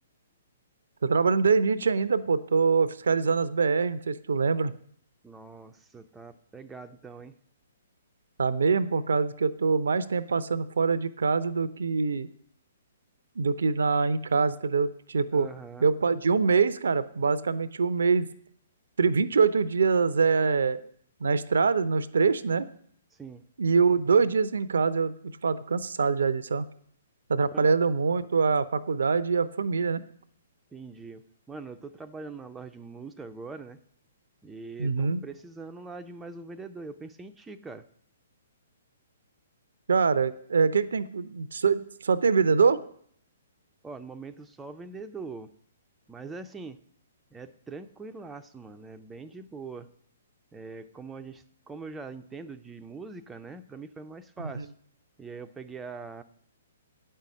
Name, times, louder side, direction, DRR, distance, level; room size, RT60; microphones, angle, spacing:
voice 1, 1.0-4.7 8.4-12.3 13.4-15.5 15.8-18.3 19.0-20.8 21.2-22.7 23.6-25.1 25.4-26.7 27.3-30.0 34.8-35.2 39.9-42.8 54.5-54.6, right 5 dB, 65° right, 14 dB, 0.6 m, -24 dB
voice 2, 5.2-7.3 15.3-15.9 23.1-23.4 27.5-27.7 30.7-33.8 34.4-37.9 43.8-45.5 46.1-46.8 47.3-49.9 50.5-54.7 55.2-56.2, right 4 dB, 10° right, 7 dB, 0.5 m, -42 dB
8.8 x 5.6 x 7.3 m, 0.62 s
figure-of-eight pair, 120°, 0 cm